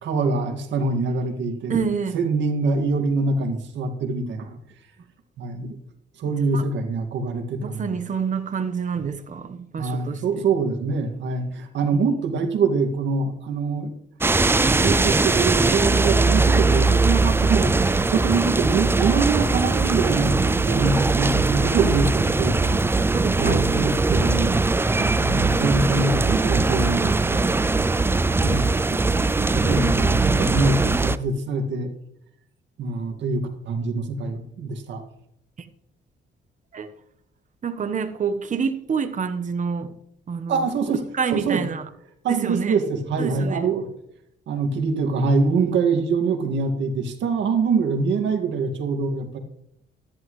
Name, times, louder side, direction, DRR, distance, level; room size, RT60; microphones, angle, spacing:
voice 1, 0.0-1.8 2.1-4.6 5.4-5.8 6.2-8.0 9.8-13.9 14.6-22.9 23.4-24.6 25.2-27.6 28.4-29.0 29.4-31.9 32.8-35.0 40.5-41.0 41.3-41.6 42.2-43.9 44.5-49.4, right 4 dB, 75° right, 2.1 m, -24 dB
voice 2, 1.7-2.2 6.5-6.6 7.6-10.5 21.7-21.9 23.2-23.7 25.0-25.1 35.6-35.7 36.7-36.9 37.6-39.9 40.3-40.7 41.1-41.8 42.3-42.8 43.2-43.6, right 6 dB, 40° right, 1.1 m, -27 dB
sound 1, 14.2-31.2, right 3 dB, 10° right, 0.4 m, -20 dB
13.5 x 11.0 x 3.2 m
cardioid pair, 100°, 19 cm